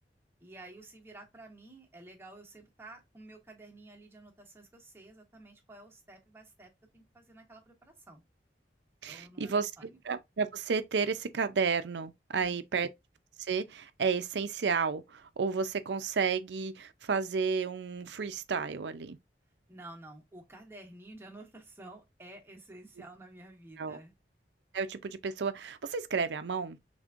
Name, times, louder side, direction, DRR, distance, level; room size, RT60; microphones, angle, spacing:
voice 1, 0.4-8.2 9.1-10.0 19.7-24.1, right 2 dB, 15° right, 1.1 m, -51 dB
voice 2, 9.0-12.9 13.4-19.2 23.8-24.0 24.7-26.8, right 5 dB, 80° right, 0.5 m, -32 dB
5.1 x 3.5 x 2.5 m
head